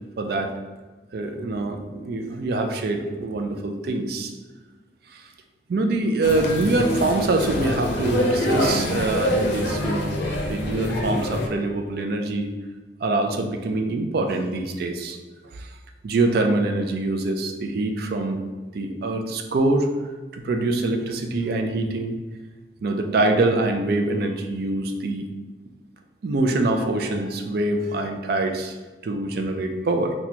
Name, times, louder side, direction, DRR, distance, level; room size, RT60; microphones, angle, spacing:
voice 1, 0.2-0.5 1.1-4.3 5.1-5.2 5.7-10.2 10.4-12.5 13.0-15.2 15.5-15.7 16.0-18.4 18.7-19.9 20.3-22.1 22.8-25.3 26.2-28.8 29.0-30.1, right 2 dB, 55° right, 5 dB, 0.4 m, -24 dB
sound 1, 6.2-11.5, equal, 65° left, 0.5 m, -25 dB
4.1 x 2.3 x 2.8 m, 1.3 s
head